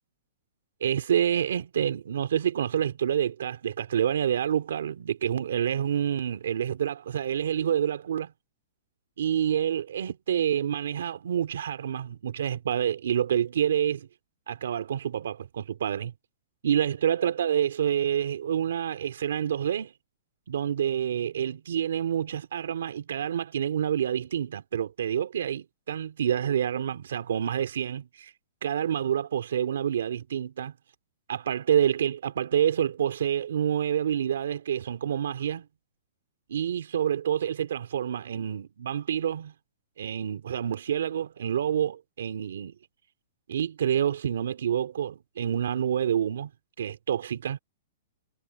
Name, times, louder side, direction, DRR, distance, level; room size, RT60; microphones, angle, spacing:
voice 1, 0.8-8.3 9.2-14.1 14.5-16.1 16.6-19.9 20.5-28.3 28.6-30.7 31.3-35.7 36.5-39.5 40.0-42.8 43.5-46.5 46.8-47.6, right 9 dB, 70° right, 2.7 m, -28 dB
hypercardioid pair, 180°, 0 cm